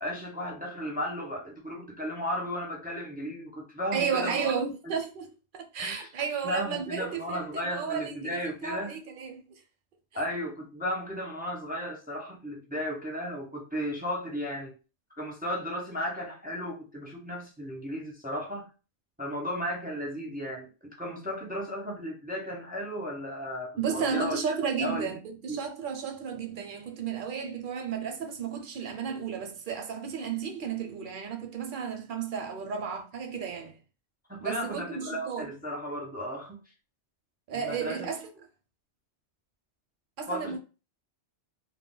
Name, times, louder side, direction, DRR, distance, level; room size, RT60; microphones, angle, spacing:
voice 1, 0.0-4.5 4.8-4.9 5.8-6.1 6.4-9.0 10.1-14.7 15.2-18.7 19.2-24.4 24.8-25.1 25.5-25.6 34.3-36.6 37.5-38.1 40.3-40.6, equal, 10° right, 0.4 m, -35 dB
voice 2, 3.9-9.4 10.1-10.2 23.8-33.8 34.4-35.5 37.5-38.3 40.2-40.6, right 6 dB, 60° right, 0.6 m, -33 dB
2.3 x 2.1 x 3.7 m
omnidirectional pair, 1.2 m